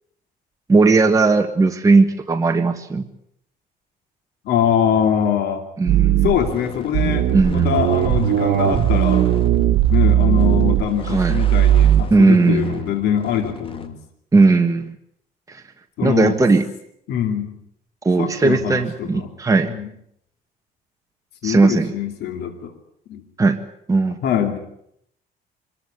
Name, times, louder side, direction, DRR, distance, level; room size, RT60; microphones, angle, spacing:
voice 1, 0.7-3.0 5.8-6.2 7.3-7.7 11.1-11.4 12.1-12.7 14.3-14.9 15.5-15.6 16.0-16.6 18.0-19.7 21.4-21.9 23.4-23.6 23.9-24.2, right 3 dB, 20° right, 4 dB, 1.6 m, -17 dB
voice 2, 4.4-5.6 6.2-9.3 9.9-14.0 16.0-16.4 17.1-17.5 18.2-19.3 19.6-19.9 21.4-22.7 23.1-23.2 24.2-24.6, left 9 dB, 80° left, 6 dB, 2.9 m, -23 dB
sound 1, 5.9-13.9, left 4 dB, 30° left, 2.5 m, -39 dB
sound 2, 5.9-6.5 6.9-12.0, right 12 dB, 75° right, 1.5 m, -17 dB
24.5 x 15.0 x 9.8 m, 0.74 s
cardioid pair, 110°, 17 cm